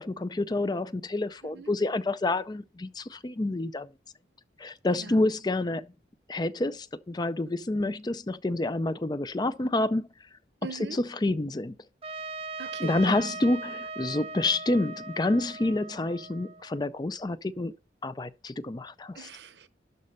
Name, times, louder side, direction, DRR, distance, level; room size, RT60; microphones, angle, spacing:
voice 1, 0.0-3.9 4.6-5.9 6.3-10.1 11.0-11.8 12.8-17.7 18.0-19.3, left 2 dB, 25° left, 0.4 m, -28 dB
voice 2, 1.4-1.7 4.9-5.3 10.6-11.0 12.6-13.3 19.1-19.7, right 4 dB, 75° right, 0.8 m, -41 dB
Trumpet, 12.0-16.9, right 4 dB, 30° right, 0.4 m, -39 dB
12.0 x 4.2 x 6.6 m
head